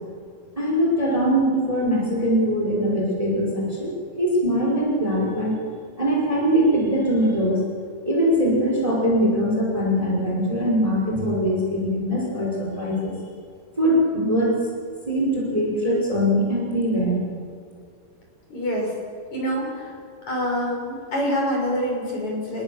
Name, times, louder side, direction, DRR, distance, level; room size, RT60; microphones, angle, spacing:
voice 1, 0.5-5.6 6.0-7.6 8.0-13.1 13.8-14.6 15.1-17.2, equal, 10° right, -3 dB, 5.1 m, -22 dB
voice 2, 18.5-18.9 19.3-19.9 20.3-22.6, equal, 45° left, -1 dB, 7.3 m, -26 dB
30.0 x 20.0 x 7.3 m, 2.3 s
omnidirectional pair, 4.7 m